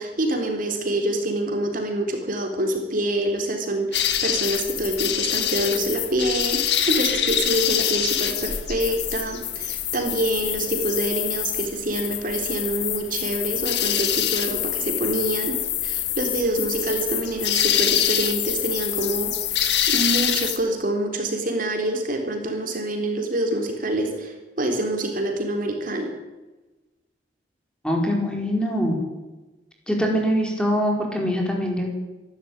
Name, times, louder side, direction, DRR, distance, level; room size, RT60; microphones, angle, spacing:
voice 1, 0.0-26.1, right 1 dB, 50° right, 3 dB, 3.9 m, -26 dB
sound 1, 3.9-20.6, left 10 dB, 70° left, 2.2 m, -25 dB
voice 2, 27.8-29.0 29.9-31.9, equal, 5° left, 0 dB, 5.1 m, -23 dB
26.0 x 12.5 x 9.1 m, 1.1 s
head